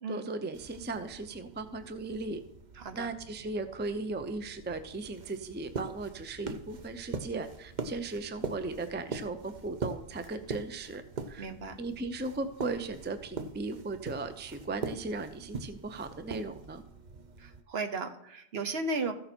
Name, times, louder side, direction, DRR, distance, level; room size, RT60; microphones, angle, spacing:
voice 1, 0.1-2.4 2.9-11.0 11.3-11.5 11.8-16.8, right 3 dB, 15° right, 9 dB, 0.5 m, -37 dB
sound 1, 0.5-17.6, right 4 dB, 45° right, 0.8 m, -43 dB
voice 2, 2.8-3.1 11.4-11.8 17.4-19.1, right 3 dB, 70° right, 7 dB, 1.2 m, -35 dB
14.5 x 6.7 x 4.4 m, 0.76 s
omnidirectional pair, 1.1 m